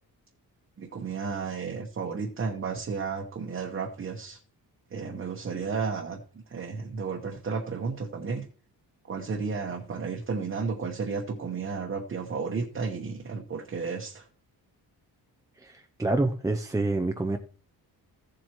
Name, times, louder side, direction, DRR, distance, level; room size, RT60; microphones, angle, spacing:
voice 1, 0.8-4.4 4.9-8.4 9.0-14.3, right 5 dB, 35° right, 1.0 m, -33 dB
voice 2, 15.6-17.4, right 2 dB, 10° right, 0.4 m, -27 dB
15.0 x 7.6 x 2.9 m
wide cardioid pair, 165°, 39 cm